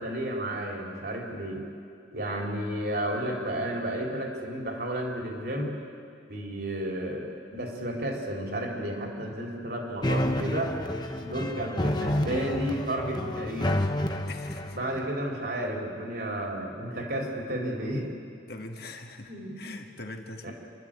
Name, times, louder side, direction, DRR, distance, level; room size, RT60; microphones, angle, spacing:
voice 1, 0.0-1.6 2.1-5.7 6.3-10.7 11.2-13.8 14.7-18.1 19.3-19.6 20.4-20.5, right 1 dB, 55° right, 0 dB, 3.5 m, -32 dB
sound 1, 10.0-15.1, left 1 dB, 20° left, 1.1 m, -29 dB
voice 2, 14.3-14.8 18.5-20.5, left 2 dB, 55° left, 3 dB, 1.7 m, -42 dB
28.0 x 12.0 x 8.8 m, 2.3 s
head